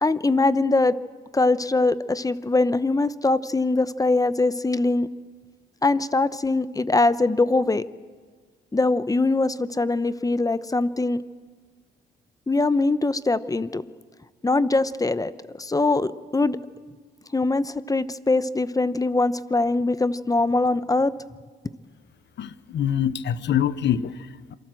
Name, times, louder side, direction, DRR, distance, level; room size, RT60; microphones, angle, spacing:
voice 1, 0.0-0.9 1.3-5.1 5.8-7.8 8.7-11.2 12.5-13.8 14.4-16.6 17.3-21.1, left 2 dB, 15° left, 15 dB, 0.8 m, -22 dB
voice 2, 22.4-24.5, left 9 dB, 65° left, 15 dB, 1.1 m, -25 dB
27.0 x 23.5 x 7.7 m, 1.5 s
cardioid pair, 90°, 20 cm